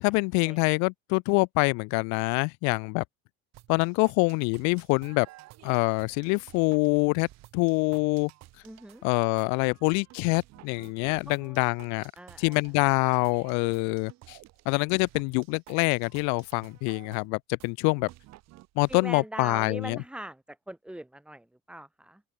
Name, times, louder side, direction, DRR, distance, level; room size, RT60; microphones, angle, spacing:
voice 1, 0.0-3.0 3.7-5.3 5.6-7.3 7.5-8.3 9.0-12.1 12.4-14.4 14.7-18.1 18.8-20.0, left 33 dB, 80° left, 0.4 m, -25 dB
sound 1, 3.5-19.0, right 17 dB, 65° right, 5.0 m, -53 dB
voice 2, 8.6-9.0 11.3-11.6 12.2-12.6 18.9-22.2, right 1 dB, 5° right, 1.2 m, -41 dB
open air
cardioid pair, 130°, 29 cm